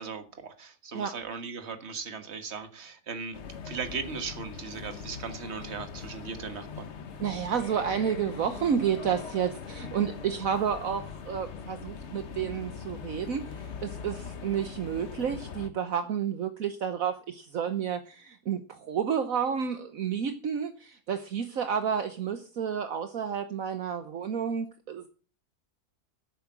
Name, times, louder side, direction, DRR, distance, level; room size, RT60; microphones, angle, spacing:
voice 1, 0.0-3.4 3.6-6.9, right 5 dB, 45° right, 9 dB, 1.7 m, -38 dB
sound 1, 3.3-15.7, left 6 dB, 50° left, 1.2 m, -41 dB
voice 2, 7.2-25.1, right 8 dB, 65° right, 9 dB, 1.4 m, -30 dB
10.5 x 8.6 x 7.4 m, 0.38 s
omnidirectional pair, 1.6 m